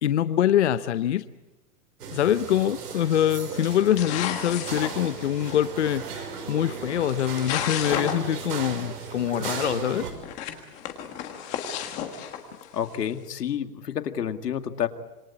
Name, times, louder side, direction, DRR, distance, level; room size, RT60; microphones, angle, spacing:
voice 1, 0.0-1.2 2.1-10.1, left 10 dB, 50° left, 13 dB, 0.8 m, -24 dB
sound 1, 2.0-10.1, right 6 dB, 80° right, 6.0 m, -36 dB
sound 2, 2.9-3.2 3.6-5.6 6.7-6.8 7.1-8.4 8.7-8.8 9.0-9.1 9.6-9.7 10.2-12.9, left 9 dB, 15° left, 1.6 m, -33 dB
voice 2, 12.7-14.9, left 9 dB, 85° left, 9 dB, 2.2 m, -29 dB
27.0 x 22.0 x 8.6 m, 1.1 s
hypercardioid pair, 180°, 46 cm